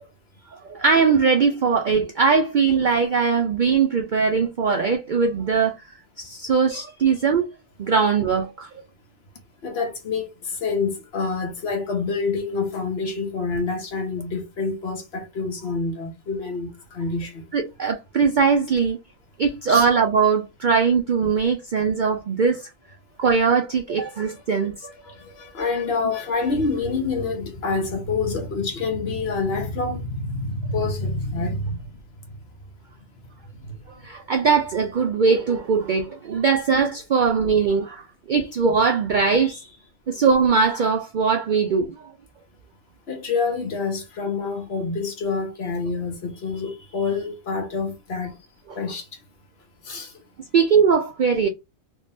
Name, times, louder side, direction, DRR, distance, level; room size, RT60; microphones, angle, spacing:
voice 1, 0.7-5.7 6.2-7.5 7.8-8.7 17.5-19.0 19.4-22.7 23.2-24.7 34.0-39.7 40.1-41.9 50.5-51.5, right 5 dB, 60° right, 0.5 m, -20 dB
voice 2, 9.6-17.4 19.7-19.9 24.0-24.3 24.6-31.8 33.5-33.7 43.1-48.3 48.7-49.1 49.8-50.1, left 4 dB, 55° left, 1.0 m, -27 dB
3.6 x 3.1 x 2.5 m
omnidirectional pair, 1.3 m